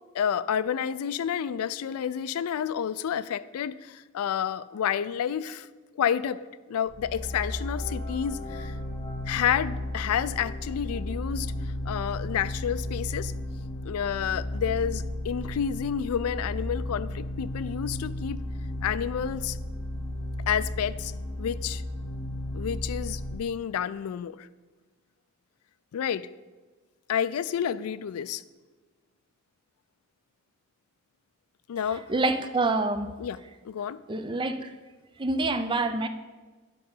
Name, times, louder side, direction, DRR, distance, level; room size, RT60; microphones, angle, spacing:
voice 1, 0.1-5.7 6.0-6.4 6.7-8.7 9.3-11.5 11.9-13.3 13.9-18.4 18.8-19.6 20.5-21.1 21.4-21.8 22.5-24.5 25.9-26.3 27.1-28.4 31.7-32.0 33.2-33.4 33.7-34.0, left 8 dB, 90° left, 16 dB, 0.3 m, -29 dB
sound 1, 6.9-23.3, left 1 dB, 15° left, 1.4 m, -34 dB
voice 2, 31.9-33.1 34.1-34.7 35.2-36.1, right 2 dB, 20° right, 10 dB, 0.4 m, -27 dB
10.5 x 3.9 x 5.5 m, 1.3 s
head